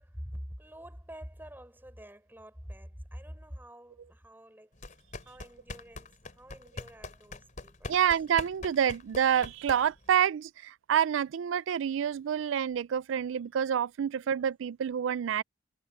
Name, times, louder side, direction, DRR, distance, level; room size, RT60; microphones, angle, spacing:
voice 1, 0.0-4.7 5.2-8.0 14.1-14.4, equal, 10° right, 6.2 m, -47 dB
sound 1, 4.8-10.1, left 2 dB, 40° left, 3.9 m, -43 dB
voice 2, 7.9-15.4, right 8 dB, 70° right, 0.3 m, -28 dB
head